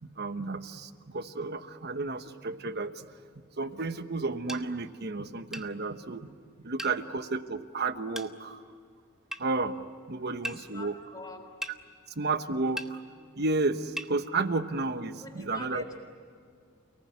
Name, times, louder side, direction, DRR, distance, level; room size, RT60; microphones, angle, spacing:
voice 1, 0.0-3.1 3.6-6.3 6.6-8.6 9.4-10.9 12.2-13.0 13.4-15.8, right 3 dB, 50° right, 10 dB, 1.1 m, -32 dB
sound 1, 4.5-4.6 5.5-5.7 6.8-7.0 8.1-8.3 9.3-9.4 10.4-10.6 11.6-11.8 12.8-12.9 14.0-14.1, equal, 5° right, 1.1 m, -37 dB
voice 2, 6.6-7.0 10.4-11.4 15.2-16.0, left 2 dB, 20° left, 4 dB, 3.9 m, -46 dB
30.0 x 19.0 x 9.4 m, 2.3 s
head